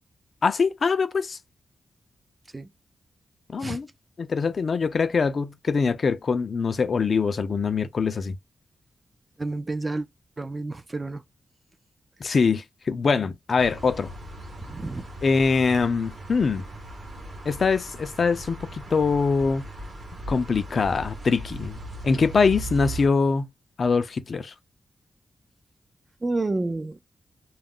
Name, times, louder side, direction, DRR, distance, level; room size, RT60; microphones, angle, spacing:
voice 1, 0.4-1.4 3.5-3.9 4.2-8.4 12.2-14.1 15.2-16.6 17.5-19.6 20.3-23.5 23.8-24.5, left 5 dB, 45° left, 0.4 m, -23 dB
voice 2, 9.4-10.1 10.4-11.2 14.6-15.1 26.2-27.0, right 2 dB, 20° right, 0.3 m, -29 dB
sound 1, 13.6-23.1, right 2 dB, 50° right, 0.8 m, -38 dB
2.3 x 2.0 x 3.5 m
wide cardioid pair, 145°, 0 cm